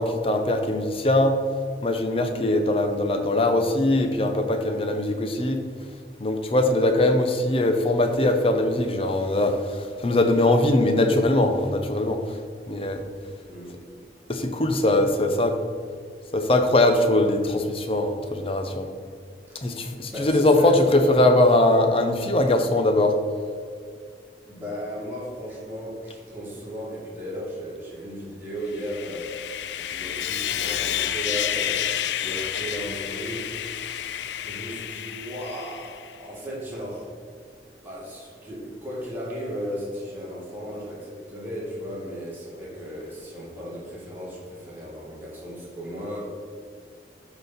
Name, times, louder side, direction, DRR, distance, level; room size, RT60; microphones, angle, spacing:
voice 1, 0.0-1.4 1.8-5.6 6.2-12.2 12.7-13.0 14.3-15.5 16.3-18.9 19.6-23.1, left 1 dB, 30° left, 5 dB, 0.8 m, -21 dB
voice 2, 19.5-19.8 20.1-21.3 24.5-29.4 29.8-33.5 34.4-37.1 37.8-46.2, equal, 10° right, -6 dB, 2.2 m, -35 dB
Sawing, 28.7-36.1, left 10 dB, 80° left, 0.4 m, -30 dB
12.0 x 4.1 x 4.2 m, 2.2 s
head